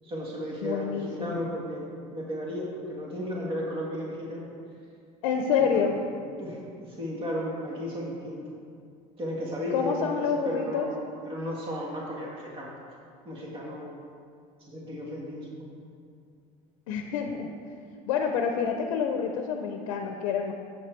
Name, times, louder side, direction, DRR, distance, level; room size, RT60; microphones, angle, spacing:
voice 1, 0.0-4.5 5.6-5.9 6.4-8.4 9.2-12.9 13.2-14.0 14.7-15.7, equal, 35° right, -3 dB, 1.6 m, -34 dB
voice 2, 0.6-1.5 5.2-5.9 9.7-10.9 16.9-17.5 18.1-20.5, left 6 dB, 85° left, 4 dB, 0.6 m, -28 dB
7.6 x 5.9 x 4.5 m, 2.3 s
supercardioid pair, 115°, 16 cm